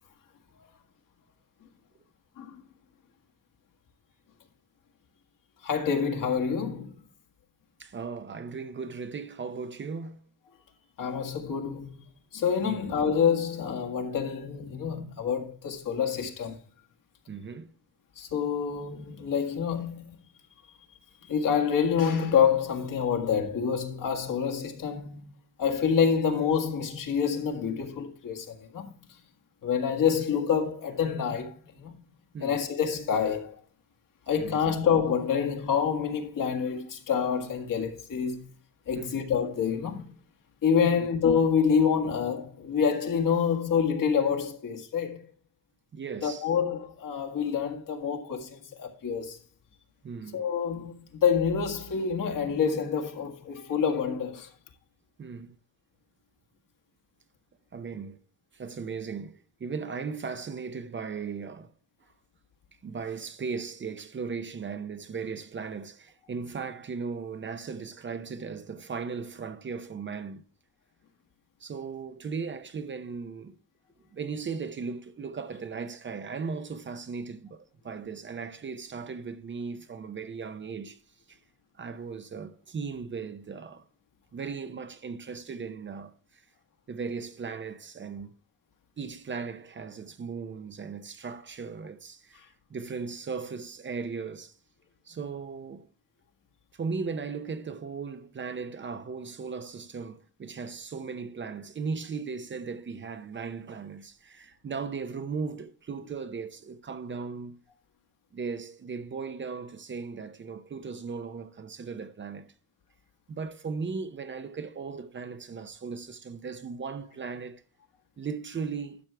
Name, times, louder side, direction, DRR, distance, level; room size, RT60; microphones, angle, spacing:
voice 1, 5.6-6.9 11.0-11.9 12.3-16.6 18.2-20.1 21.3-25.2 25.6-28.9 29.6-31.9 32.4-33.6 34.3-38.4 38.9-40.0 40.6-45.2 46.2-49.4 50.3-54.5, left 7 dB, 65° left, 1.8 m, -27 dB
voice 2, 7.8-10.2 12.6-12.8 14.8-14.9 17.3-17.7 32.3-32.6 34.4-34.8 38.9-39.2 40.8-41.1 45.9-46.5 50.0-50.4 55.2-55.5 57.7-58.2 58.5-61.7 62.8-70.4 71.6-73.5 74.1-81.0 81.3-81.4 81.8-83.8 84.3-86.4 86.9-88.3 89.0-92.4 92.7-94.5 95.1-95.9 96.7-107.6 108.3-112.5 113.3-117.6 118.2-119.0, right 5 dB, 35° right, 0.7 m, -37 dB
12.0 x 6.2 x 3.3 m
wide cardioid pair, 150°, 35 cm